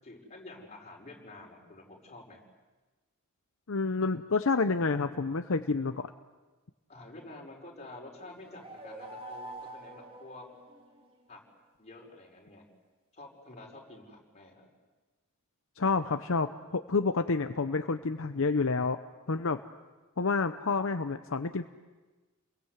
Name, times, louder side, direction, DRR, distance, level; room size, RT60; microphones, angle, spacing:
voice 1, 0.0-2.4 6.9-10.4 11.3-11.4 11.8-12.6 13.1-14.7, left 2 dB, 30° left, 0 dB, 5.6 m, -49 dB
voice 2, 3.7-6.0 15.8-19.0 19.3-19.6 20.2-21.6, left 4 dB, 65° left, 8 dB, 0.8 m, -29 dB
sound 1, 8.2-11.1, right 1 dB, 25° right, 3.8 m, -46 dB
30.0 x 22.0 x 8.2 m, 1.3 s
head